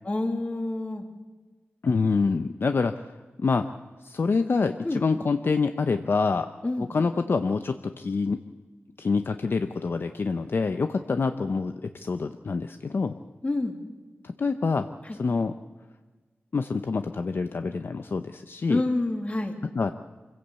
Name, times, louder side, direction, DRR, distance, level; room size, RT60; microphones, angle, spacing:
voice 1, 0.0-1.0 4.8-5.1 6.6-6.9 13.4-13.8 15.0-15.2 18.7-19.6, left 2 dB, 30° left, 5 dB, 2.5 m, -28 dB
voice 2, 1.8-3.0 3.4-3.7 4.0-6.5 6.8-8.4 9.0-13.1 14.4-14.9 15.1-15.5 16.5-18.8 19.8-19.9, left 4 dB, 55° left, 8 dB, 0.7 m, -26 dB
25.0 x 16.0 x 8.2 m, 1.4 s
wide cardioid pair, 90°, 4 cm